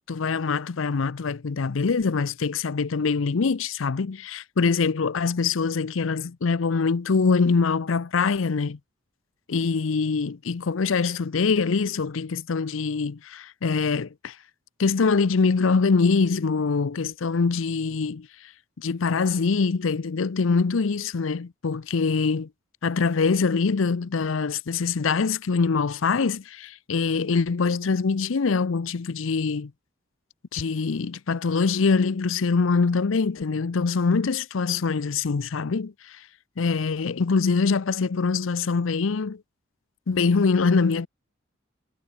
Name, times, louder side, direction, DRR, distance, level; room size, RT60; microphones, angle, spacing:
voice 1, 0.1-8.8 9.5-14.4 14.8-18.5 18.8-22.5 22.8-29.7 30.5-36.2 36.6-39.4 40.1-41.1, left 4 dB, 80° left, 0.6 m, -24 dB
head